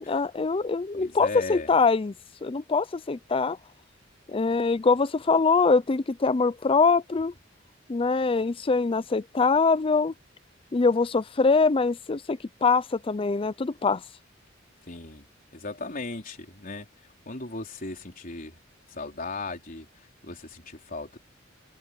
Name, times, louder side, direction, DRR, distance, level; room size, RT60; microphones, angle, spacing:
voice 1, 0.0-2.1 2.4-3.6 4.3-7.3 7.9-10.1 10.7-14.0, left 4 dB, 30° left, 0.5 m, -23 dB
voice 2, 0.9-1.7 14.9-15.3 15.5-16.9 17.3-18.5 18.9-21.2, left 3 dB, 45° left, 4.2 m, -37 dB
open air
head